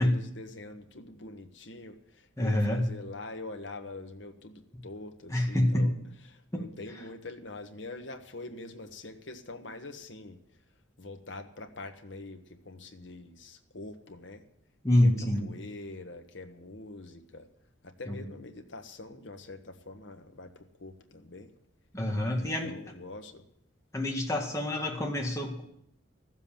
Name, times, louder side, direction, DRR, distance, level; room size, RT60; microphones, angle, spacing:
voice 1, 0.0-6.0 6.2-10.4 11.0-14.4 15.0-15.1 15.4-17.5 17.8-21.5 22.2-23.5, left 2 dB, 65° left, 6 dB, 1.4 m, -44 dB
voice 2, 2.4-2.9 5.3-5.9 6.5-6.6 14.8-15.5 18.1-18.2 21.9-22.7 23.9-25.6, left 1 dB, 15° left, 0 dB, 1.9 m, -27 dB
14.5 x 7.5 x 8.9 m, 0.74 s
head